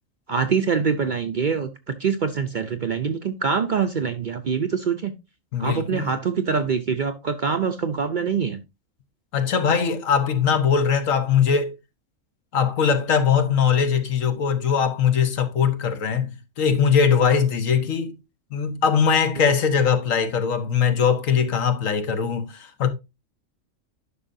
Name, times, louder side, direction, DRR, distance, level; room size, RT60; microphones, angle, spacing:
voice 1, 0.3-5.1 5.6-8.6, right 6 dB, 55° right, 0.6 m, -24 dB
voice 2, 5.5-6.1 9.3-11.7 12.5-18.1 18.5-22.9, left 7 dB, 75° left, 1.4 m, -21 dB
11.5 x 5.6 x 2.6 m
omnidirectional pair, 1.4 m